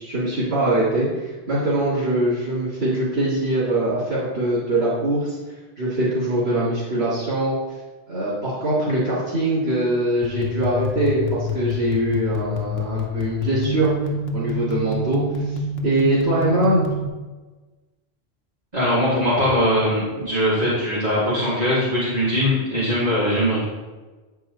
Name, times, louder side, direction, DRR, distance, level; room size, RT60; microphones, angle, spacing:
voice 1, 0.0-5.4 5.8-7.6 8.1-13.9 14.3-16.8, right 1 dB, 75° right, -11 dB, 2.5 m, -22 dB
sound 1, 10.2-17.1, left 2 dB, 70° left, 1.1 m, -27 dB
voice 2, 18.7-23.7, equal, 40° right, -11 dB, 2.5 m, -21 dB
8.8 x 4.7 x 3.9 m, 1.2 s
omnidirectional pair, 1.1 m